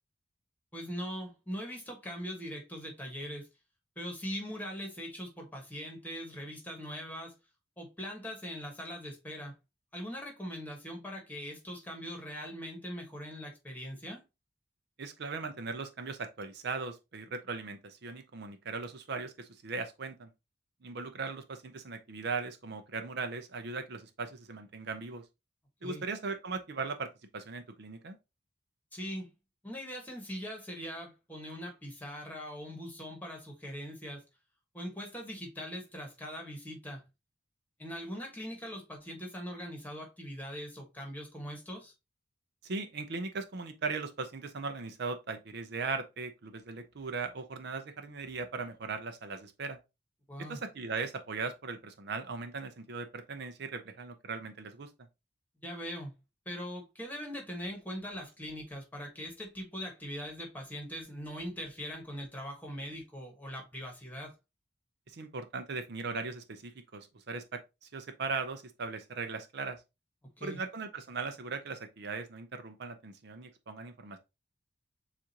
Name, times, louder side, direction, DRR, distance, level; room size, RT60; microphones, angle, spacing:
voice 1, 0.7-3.5 3.9-7.3 7.8-9.5 9.9-14.2 25.8-26.0 28.9-29.3 29.6-34.2 34.7-37.0 37.8-41.9 50.3-50.6 55.6-56.1 56.4-64.3 70.4-70.6, equal, 10° left, 1.3 m, -41 dB
voice 2, 15.0-20.3 20.8-25.2 25.8-28.2 42.6-49.8 50.5-54.9 65.1-69.8 70.4-74.2, right 4 dB, 55° right, 0.5 m, -38 dB
7.2 x 2.5 x 2.8 m
head